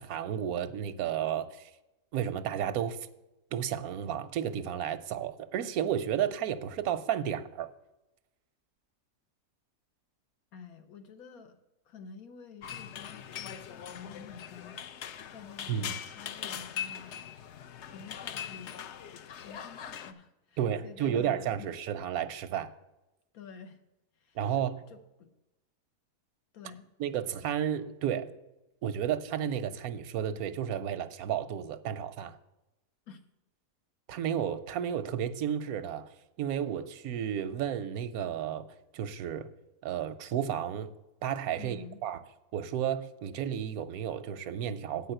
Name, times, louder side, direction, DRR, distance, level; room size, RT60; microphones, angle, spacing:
voice 1, 0.0-1.7 2.1-3.0 3.5-7.7 15.7-15.9 20.6-22.7 24.4-24.8 27.0-28.3 28.8-32.4 34.1-36.1 36.4-38.7 38.9-39.5 39.8-40.9 41.2-41.8 42.0-42.2 42.5-45.1, right 9 dB, 90° right, 1.1 m, -32 dB
voice 2, 10.5-11.6 11.9-14.8 15.3-17.4 17.8-18.9 19.4-21.7 23.3-23.8 24.2-25.3 26.5-26.9 33.1-33.2 41.6-42.0, left 6 dB, 80° left, 1.4 m, -50 dB
sound 1, 12.6-20.1, left 8 dB, 65° left, 0.8 m, -41 dB
8.3 x 5.6 x 7.8 m
omnidirectional pair, 1.5 m